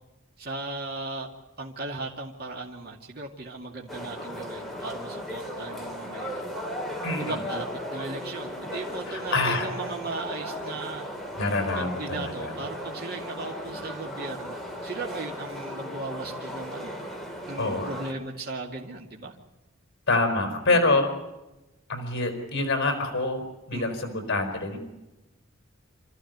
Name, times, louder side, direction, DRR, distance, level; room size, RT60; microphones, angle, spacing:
voice 1, 0.4-1.3 1.6-6.4 7.2-11.1 11.8-17.0 17.5-19.3 20.7-20.8 23.7-23.9, right 3 dB, 50° right, -1 dB, 2.3 m, -37 dB
sound 1, 3.9-18.1, equal, ahead, 3.7 m, -36 dB
voice 2, 7.0-7.4 9.1-9.7 11.4-12.5 17.6-17.9 20.1-21.1 21.9-24.8, left 2 dB, 55° left, 6 dB, 5.0 m, -26 dB
27.0 x 14.5 x 9.4 m, 1.0 s
head